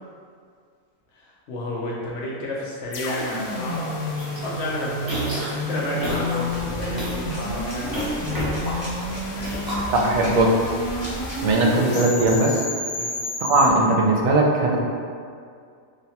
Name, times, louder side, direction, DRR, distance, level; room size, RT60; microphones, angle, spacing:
voice 1, 1.1-3.9 4.2-8.5 9.1-9.6 13.0-13.1, left 1 dB, 60° left, -4 dB, 0.9 m, -32 dB
sound 1, 2.9-13.7, left 1 dB, 85° left, 1.1 m, -30 dB
sound 2, 4.2-4.5 5.0-5.6 6.0-6.4 6.8-7.3 7.9-9.0 9.4-10.2, right 1 dB, 25° right, 0.5 m, -30 dB
sound 3, 6.5-11.5, equal, 15° left, 0.8 m, -36 dB
voice 2, 9.9-10.6 11.4-12.6 13.4-14.8, right 2 dB, 75° right, -1 dB, 0.9 m, -19 dB
2.7 x 2.2 x 4.1 m, 2.2 s
omnidirectional pair, 1.5 m